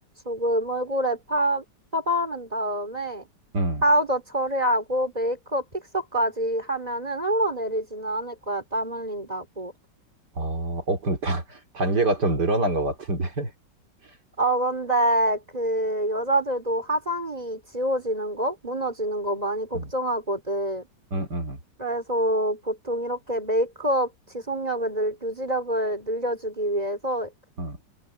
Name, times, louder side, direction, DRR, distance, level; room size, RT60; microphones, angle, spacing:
voice 1, 0.3-1.6 1.9-3.2 3.8-9.7 14.4-20.8 21.8-27.3, right 1 dB, 20° right, 3.4 m, -26 dB
voice 2, 10.4-13.5 19.7-19.9 21.1-21.6 27.6-27.8, right 2 dB, 65° right, 3.7 m, -26 dB
omnidirectional pair, 1.9 m